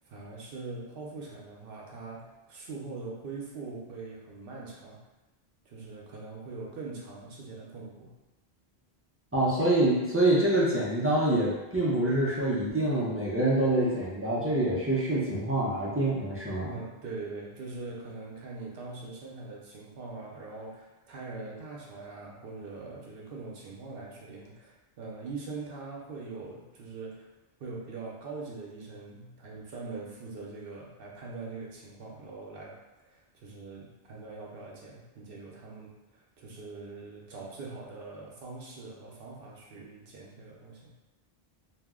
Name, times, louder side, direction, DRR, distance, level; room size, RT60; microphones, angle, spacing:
voice 1, 0.1-5.0 5.7-8.2 16.7-27.3 27.6-32.7 33.0-40.9, right 3 dB, 65° right, -3 dB, 0.8 m, -42 dB
voice 2, 9.3-16.7, right 1 dB, 20° right, -7 dB, 0.4 m, -26 dB
2.6 x 2.0 x 3.5 m, 1.1 s
omnidirectional pair, 1.1 m